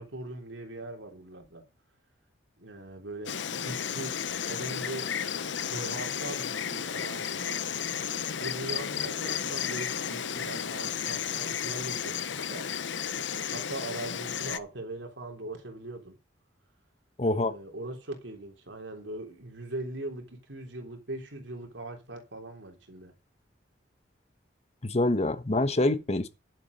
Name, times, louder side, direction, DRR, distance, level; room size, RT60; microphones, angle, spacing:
voice 1, 0.0-1.6 2.6-4.2 4.5-5.1 5.7-7.6 8.4-12.7 13.5-16.2 17.2-23.1, right 2 dB, 80° right, 3.4 m, -40 dB
Insect, 3.3-14.6, left 8 dB, 75° left, 0.8 m, -33 dB
voice 2, 17.2-17.5 24.8-26.3, left 2 dB, 35° left, 1.2 m, -26 dB
11.0 x 7.4 x 5.2 m
head